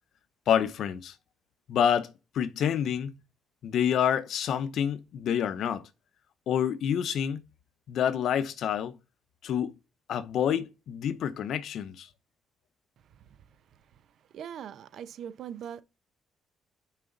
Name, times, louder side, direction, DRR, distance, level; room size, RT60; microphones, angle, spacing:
voice 1, 0.5-1.1 1.7-3.1 3.6-5.9 6.5-7.4 7.9-9.0 9.4-9.7 10.1-12.1, left 9 dB, 70° left, 0.7 m, -28 dB
voice 2, 14.3-15.8, right 9 dB, 70° right, 0.7 m, -41 dB
5.9 x 4.2 x 4.0 m
cardioid pair, 90°, 0 cm